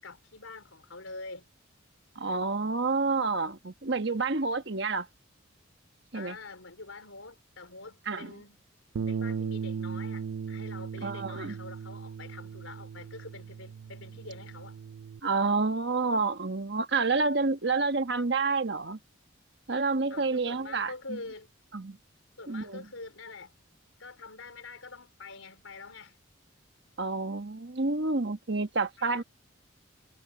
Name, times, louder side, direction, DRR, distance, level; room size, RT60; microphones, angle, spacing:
voice 1, 0.0-1.5 6.1-8.6 9.1-14.8 20.1-21.5 22.4-23.6 24.0-26.2 29.0-29.2, left 3 dB, 85° left, 4.7 m, -45 dB
voice 2, 2.1-5.1 6.1-6.4 8.1-8.3 11.0-11.6 15.2-19.0 19.7-21.2 21.7-22.0 22.5-22.8 27.0-29.2, right 3 dB, 55° right, 1.3 m, -29 dB
Bass guitar, 9.0-15.2, right 6 dB, 85° right, 0.4 m, -37 dB
head